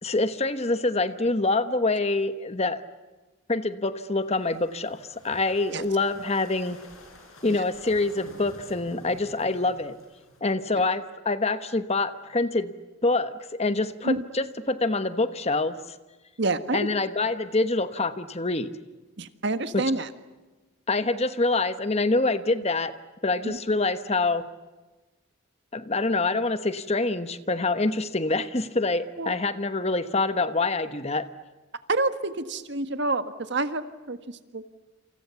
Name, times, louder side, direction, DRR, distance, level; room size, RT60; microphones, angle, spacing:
voice 1, 0.0-2.8 3.5-6.8 7.4-9.9 10.4-12.7 13.0-16.0 16.7-18.7 19.7-19.9 20.9-22.9 23.2-24.5 25.7-31.3, left 3 dB, 30° left, 11 dB, 1.1 m, -26 dB
sound 1, 4.2-10.4, left 1 dB, 85° left, 7.7 m, -50 dB
voice 2, 16.4-16.9 19.2-20.1 23.4-23.6 29.2-29.4 31.9-34.7, right 2 dB, 55° right, 10 dB, 1.6 m, -28 dB
28.5 x 28.0 x 7.1 m, 1.2 s
head